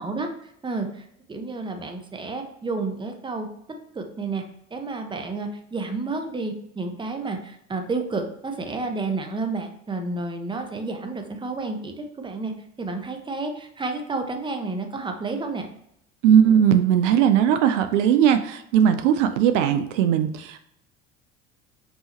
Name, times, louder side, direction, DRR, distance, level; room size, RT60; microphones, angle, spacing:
voice 1, 0.0-3.5 3.9-4.4 4.7-12.5 12.8-15.7, right 3 dB, 15° right, 5 dB, 0.7 m, -30 dB
voice 2, 16.2-20.6, right 9 dB, 75° right, 10 dB, 0.5 m, -19 dB
5.4 x 2.9 x 2.9 m, 0.72 s
hypercardioid pair, 70°, 37 cm